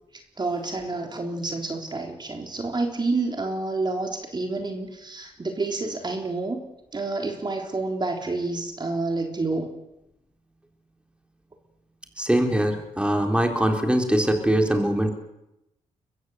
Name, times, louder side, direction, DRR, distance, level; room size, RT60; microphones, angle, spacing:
voice 1, 0.4-9.7, right 3 dB, 35° right, 3 dB, 3.7 m, -29 dB
voice 2, 12.2-15.1, right 1 dB, 10° right, 4 dB, 4.0 m, -22 dB
23.0 x 14.5 x 8.2 m, 0.87 s
supercardioid pair, 55°, 13 cm